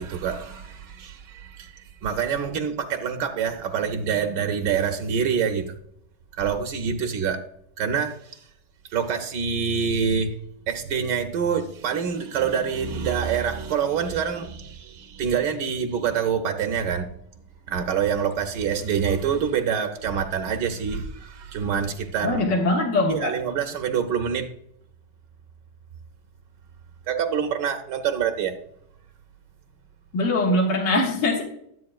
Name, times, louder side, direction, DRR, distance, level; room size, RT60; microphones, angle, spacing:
voice 1, 0.0-5.8 6.3-7.4 7.8-8.4 8.9-10.4 10.7-17.1 17.7-22.4 23.1-24.5 27.1-28.6, right 7 dB, 80° right, 1.3 m, -26 dB
voice 2, 22.2-23.3 30.1-31.4, left 2 dB, 75° left, 1.9 m, -22 dB
12.5 x 7.9 x 2.3 m
omnidirectional pair, 1.9 m